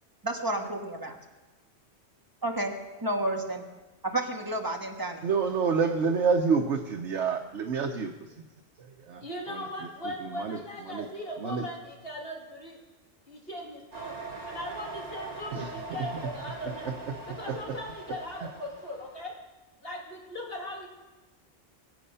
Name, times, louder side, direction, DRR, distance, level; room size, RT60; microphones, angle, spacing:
voice 1, 0.2-1.2 2.4-2.7 3.0-3.6 4.0-5.2, right 1 dB, 20° right, 3 dB, 1.5 m, -31 dB
voice 2, 5.2-8.1 9.1-9.2 9.5-9.6 10.2-10.6 10.9-11.0 11.4-11.6 15.5-15.7, right 5 dB, 90° right, 2 dB, 1.2 m, -27 dB
voice 3, 9.2-12.8 13.3-14.2 14.4-17.0 17.3-19.3 19.8-20.9, left 1 dB, 55° left, -1 dB, 2.9 m, -39 dB
sound 1, 13.9-19.2, right 3 dB, 35° right, 2.2 m, -42 dB
22.5 x 8.0 x 5.6 m, 1.1 s
omnidirectional pair, 1.2 m